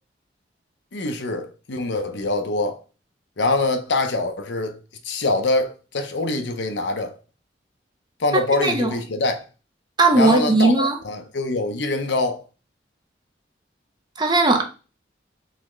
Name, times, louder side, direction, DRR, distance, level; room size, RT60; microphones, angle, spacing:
voice 1, 0.9-2.8 3.4-4.8 5.0-7.1 8.2-9.4 10.1-12.4, left 2 dB, 80° left, 0.7 m, -24 dB
voice 2, 8.3-8.9 10.0-11.0 14.2-14.6, right 2 dB, 25° right, 0.6 m, -18 dB
4.0 x 3.5 x 3.1 m
head